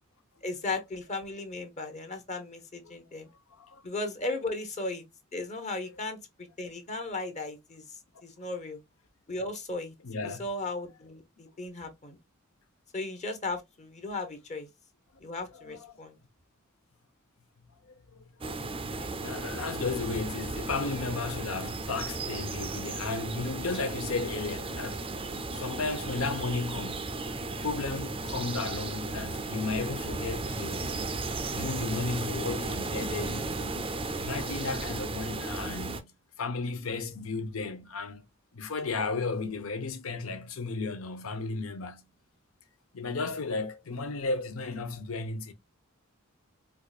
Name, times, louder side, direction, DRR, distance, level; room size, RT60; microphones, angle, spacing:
voice 1, 0.4-3.3 3.8-5.0 5.3-6.2 6.6-8.8 9.3-9.9 10.4-12.2 12.9-14.7 15.2-16.2 19.0-19.1, left 2 dB, 35° left, 0.9 m, -36 dB
voice 2, 10.0-10.4 15.5-16.0 17.9-18.6 19.2-25.0 25.5-30.9 31.5-33.8 34.2-36.1 36.4-38.2 38.5-42.1 42.9-45.5, left 4 dB, 75° left, 0.7 m, -34 dB
sound 1, 18.4-36.0, right 3 dB, 25° right, 0.5 m, -35 dB
4.6 x 2.4 x 2.4 m
head